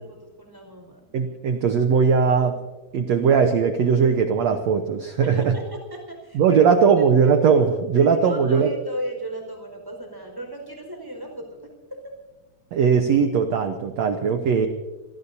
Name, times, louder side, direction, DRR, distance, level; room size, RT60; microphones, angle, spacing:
voice 1, 0.0-1.0 5.2-6.7 7.0-7.1 7.9-11.7, right 1 dB, 5° right, 2 dB, 4.6 m, -36 dB
voice 2, 1.1-2.6 2.9-5.5 6.3-8.7 12.7-14.7, right 6 dB, 80° right, 6 dB, 1.5 m, -19 dB
28.0 x 18.5 x 2.8 m, 1.2 s
omnidirectional pair, 4.4 m